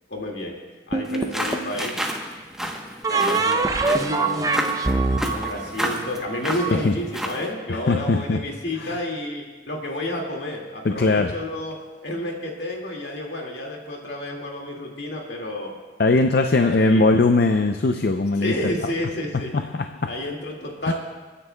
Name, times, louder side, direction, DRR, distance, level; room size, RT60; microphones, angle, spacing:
voice 1, 0.1-0.6 0.9-2.0 3.1-4.6 5.3-11.8 12.0-15.7 16.6-17.1 18.4-19.6 20.1-20.9, left 1 dB, 70° left, 0 dB, 2.0 m, -30 dB
sound 1, 0.9-1.8 3.0-6.7, right 3 dB, 20° right, 0.5 m, -24 dB
sound 2, 1.0-7.5, equal, 5° right, 0.9 m, -31 dB
voice 2, 7.9-8.4 8.8-9.0 10.8-11.4 16.0-18.5 19.5-20.1 20.9-21.0, left 3 dB, 55° left, 6 dB, 0.5 m, -20 dB
29.0 x 9.9 x 2.2 m, 1.3 s
head